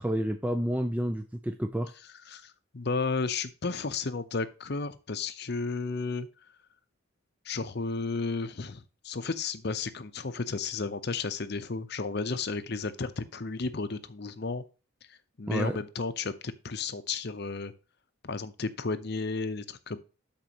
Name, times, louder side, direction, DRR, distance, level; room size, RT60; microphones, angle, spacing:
voice 1, 0.0-1.9 15.5-15.8, equal, 5° right, 6 dB, 0.4 m, -30 dB
voice 2, 2.3-6.3 7.4-14.6 15.1-17.7 18.2-20.0, left 4 dB, 50° left, 11 dB, 0.7 m, -33 dB
12.5 x 4.5 x 2.9 m, 0.33 s
head